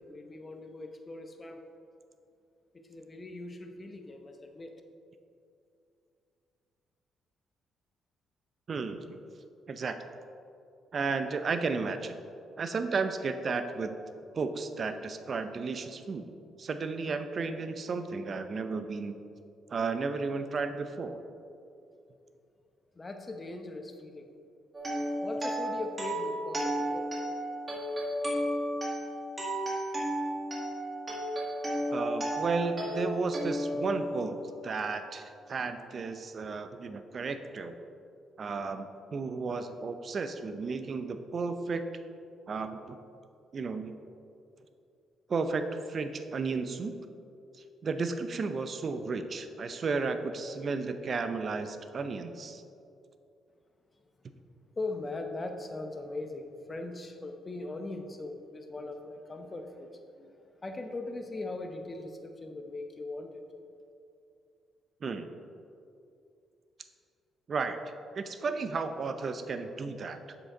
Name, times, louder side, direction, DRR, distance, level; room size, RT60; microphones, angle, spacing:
voice 1, 0.0-1.6 2.7-4.7 22.9-24.3 25.2-27.1 54.7-63.4, left 2 dB, 30° left, 5 dB, 0.8 m, -40 dB
voice 2, 8.7-9.2 9.7-10.0 10.9-12.2 12.6-14.0 14.3-16.3 16.6-19.2 19.7-21.2 31.9-34.4 34.6-37.8 38.4-41.8 42.5-43.0 43.5-44.0 45.3-47.0 47.8-52.6 65.0-65.3 67.5-67.8 68.1-70.2, right 4 dB, 45° right, 9 dB, 0.5 m, -33 dB
sound 1, 24.7-34.7, equal, 30° right, 1.7 m, -33 dB
7.4 x 6.7 x 3.8 m, 2.6 s
cardioid pair, 90°, 0 cm